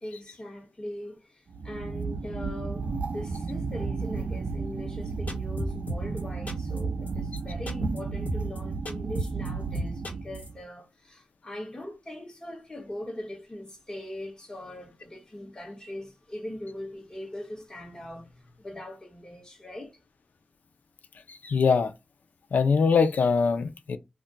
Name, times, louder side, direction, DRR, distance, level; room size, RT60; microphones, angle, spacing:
voice 1, 0.0-20.0, left 1 dB, 25° left, 1.1 m, -41 dB
sound 1, 1.5-10.6, right 4 dB, 55° right, 0.4 m, -33 dB
sound 2, 5.3-6.2 6.5-6.8 7.1-7.2 7.4-7.5 7.7-8.0 8.3-8.6 8.8-9.5 9.7-10.5, equal, 65° left, 1.1 m, -32 dB
voice 2, 21.3-21.9 22.5-24.0, left 5 dB, 85° left, 0.4 m, -23 dB
2.4 x 2.2 x 3.9 m
wide cardioid pair, 130°, 3 cm